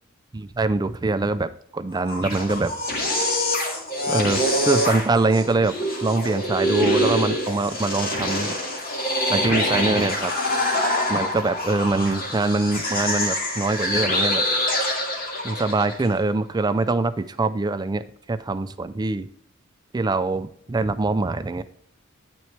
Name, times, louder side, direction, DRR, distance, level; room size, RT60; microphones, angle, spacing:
voice 1, 0.6-2.7 4.1-5.8 6.0-8.5 9.3-10.3 11.1-14.4 15.4-19.3 19.9-21.6, right 3 dB, 20° right, 12 dB, 0.4 m, -23 dB
sound 1, 1.9-16.1, left 1 dB, 45° left, 2.0 m, -25 dB
9.2 x 6.1 x 3.3 m, 0.66 s
head